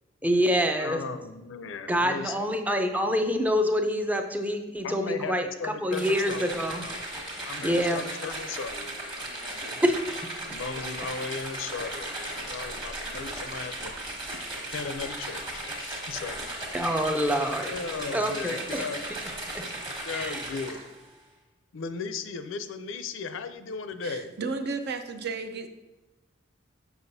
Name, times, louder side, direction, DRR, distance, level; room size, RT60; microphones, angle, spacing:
voice 1, 0.2-1.0 1.9-6.9 7.6-8.0 9.8-10.0 16.7-17.7 18.1-18.9 19.5-19.7 20.1-20.4, equal, 10° right, 5 dB, 0.5 m, -26 dB
voice 2, 0.8-2.5 4.8-7.1 7.4-9.8 10.5-14.0 14.7-16.6 17.2-19.2 20.0-20.8 21.7-24.3, left 5 dB, 70° left, 10 dB, 0.5 m, -37 dB
sound 1, 5.9-21.0, right 1 dB, 25° right, 1.4 m, -36 dB
voice 3, 24.0-25.7, right 4 dB, 55° right, 8 dB, 0.6 m, -33 dB
7.0 x 6.2 x 2.7 m, 1.1 s
head